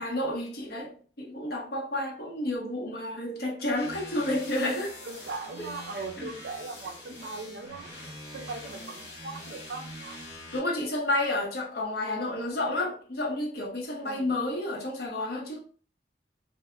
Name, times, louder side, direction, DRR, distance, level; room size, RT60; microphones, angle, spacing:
voice 1, 0.0-5.0 5.6-5.7 6.2-6.3 10.5-15.6, left 1 dB, 60° left, 0.7 m, -30 dB
sound 1, 3.7-10.6, left 1 dB, 85° left, 1.1 m, -44 dB
voice 2, 5.0-7.9 8.3-10.2 14.0-14.3, right 3 dB, 65° right, 0.4 m, -39 dB
2.1 x 2.0 x 3.6 m
head